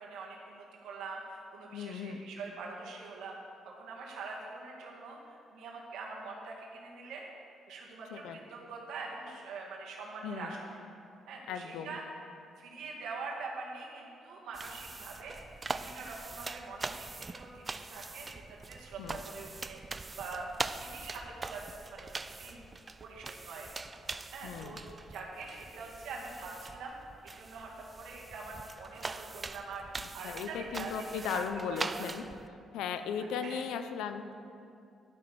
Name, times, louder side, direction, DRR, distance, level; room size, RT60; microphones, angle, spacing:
voice 1, 0.0-3.4 3.7-7.3 7.7-10.6 11.3-12.0 12.6-15.4 15.7-20.4 20.8-22.6 23.0-23.9 24.3-26.9 27.2-29.9 30.1-30.9 31.3-32.1 33.2-33.6, right 4 dB, 85° right, -2 dB, 2.0 m, -44 dB
voice 2, 1.7-2.2 8.1-8.4 10.2-10.6 11.5-12.0 19.0-19.2 24.4-24.8 30.2-32.3 32.7-34.3, left 7 dB, 90° left, 9 dB, 0.6 m, -37 dB
sound 1, 14.5-32.5, right 3 dB, 30° right, 0.4 m, -43 dB
11.5 x 6.0 x 6.7 m, 2.6 s
cardioid pair, 90°, 0 cm